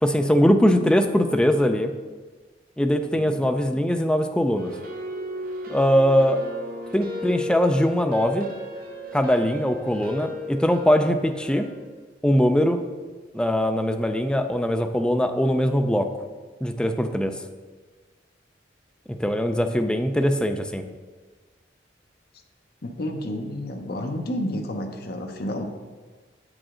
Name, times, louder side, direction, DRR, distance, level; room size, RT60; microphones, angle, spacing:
voice 1, 0.0-1.9 2.8-4.7 5.7-6.4 6.9-8.5 9.1-11.7 12.2-12.8 13.3-16.1 16.6-17.3 19.1-20.8, equal, 5° left, 6 dB, 0.4 m, -21 dB
sound 1, 4.6-11.9, left 1 dB, 50° right, 0.8 m, -35 dB
voice 2, 22.8-25.6, left 1 dB, 55° left, 4 dB, 0.7 m, -30 dB
7.4 x 4.9 x 3.7 m, 1.4 s
head